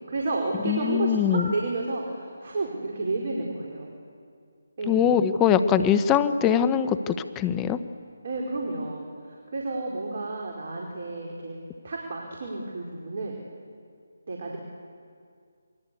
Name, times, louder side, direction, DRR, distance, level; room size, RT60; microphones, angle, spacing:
voice 1, 0.1-3.9 4.8-5.1 5.5-5.9 8.2-11.6 11.8-13.4 14.3-14.6, right 2 dB, 50° right, -1 dB, 4.8 m, -31 dB
voice 2, 0.6-1.5 4.9-7.8, left 8 dB, 15° left, 12 dB, 0.9 m, -22 dB
27.5 x 22.5 x 8.5 m, 2.2 s
figure-of-eight pair, 155°, 0 cm